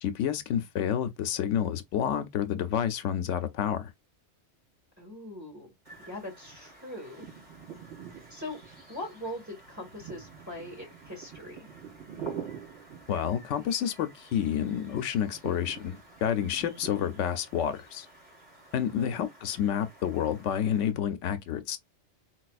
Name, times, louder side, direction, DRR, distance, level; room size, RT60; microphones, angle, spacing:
voice 1, 0.0-3.9 13.1-18.1 18.7-21.8, left 9 dB, 85° left, 0.9 m, -29 dB
voice 2, 5.0-5.7 6.1-7.3 8.3-8.6 8.9-11.6 18.9-19.1, left 1 dB, 15° right, 1.7 m, -41 dB
sound 1, 5.8-20.9, right 6 dB, 40° right, 2.2 m, -47 dB
4.0 x 2.3 x 2.3 m
omnidirectional pair, 1.2 m